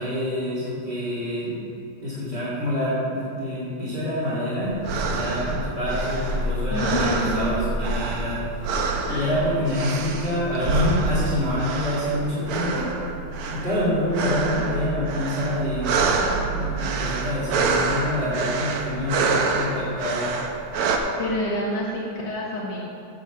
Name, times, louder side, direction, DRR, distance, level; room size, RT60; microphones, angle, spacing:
voice 1, 0.0-8.7 9.1-12.9 13.5-20.3, left 1 dB, 20° left, -9 dB, 2.5 m, -27 dB
sound 1, 4.6-21.0, right 4 dB, 70° right, 1.3 m, -27 dB
voice 2, 6.7-7.7 9.1-9.4 14.1-14.7 21.2-22.8, left 1 dB, 65° left, -5 dB, 2.3 m, -28 dB
8.0 x 7.2 x 7.1 m, 2.5 s
omnidirectional pair, 3.4 m